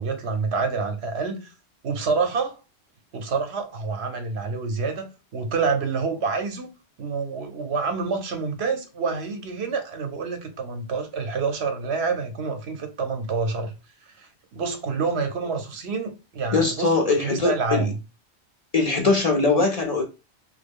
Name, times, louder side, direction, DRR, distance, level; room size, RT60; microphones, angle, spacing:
voice 1, 0.0-1.5 1.8-2.6 3.1-6.7 7.0-13.7 14.1-18.0, right 4 dB, 75° right, 1.0 m, -27 dB
voice 2, 16.5-17.9 18.7-20.0, left 3 dB, 45° left, 0.5 m, -21 dB
3.1 x 2.3 x 3.5 m
omnidirectional pair, 1.1 m